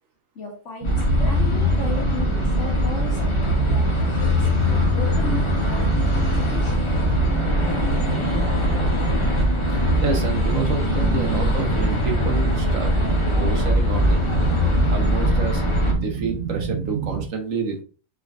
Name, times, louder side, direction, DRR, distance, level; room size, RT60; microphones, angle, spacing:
voice 1, 0.3-5.9 6.3-6.9, left 2 dB, 60° left, 1 dB, 1.6 m, -36 dB
sound 1, 0.8-15.9, left 1 dB, 25° left, 1.1 m, -21 dB
sound 2, 0.8-17.3, right 6 dB, 55° right, 0.7 m, -28 dB
voice 2, 9.7-12.9 13.3-14.3 14.9-17.8, right 5 dB, 75° right, 4 dB, 1.4 m, -29 dB
4.8 x 4.4 x 2.5 m, 0.38 s
omnidirectional pair, 1.4 m